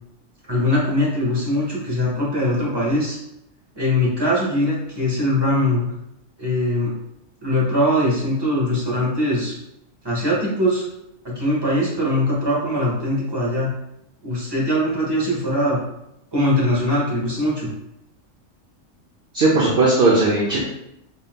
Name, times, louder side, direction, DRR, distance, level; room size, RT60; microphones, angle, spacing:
voice 1, 0.5-3.2 3.8-5.8 6.4-6.9 7.4-9.5 10.0-10.8 11.2-13.7 14.2-15.8 16.3-17.7, left 1 dB, 20° right, -5 dB, 1.3 m, -21 dB
voice 2, 19.3-20.6, right 2 dB, 55° right, -3 dB, 0.8 m, -17 dB
4.0 x 3.9 x 2.2 m, 0.82 s
omnidirectional pair, 1.4 m